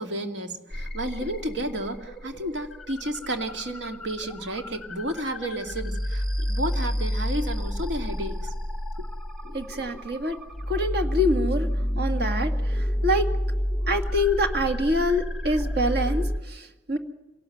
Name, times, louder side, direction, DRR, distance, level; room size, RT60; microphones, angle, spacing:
voice 1, 0.0-8.5, right 1 dB, 80° right, 5 dB, 2.4 m, -32 dB
sound 1, 0.7-16.4, equal, ahead, 1.1 m, -30 dB
voice 2, 9.5-10.4 10.7-11.7 12.0-13.3 13.9-17.0, left 1 dB, 60° right, 7 dB, 2.1 m, -26 dB
27.0 x 18.0 x 7.9 m, 1.1 s
head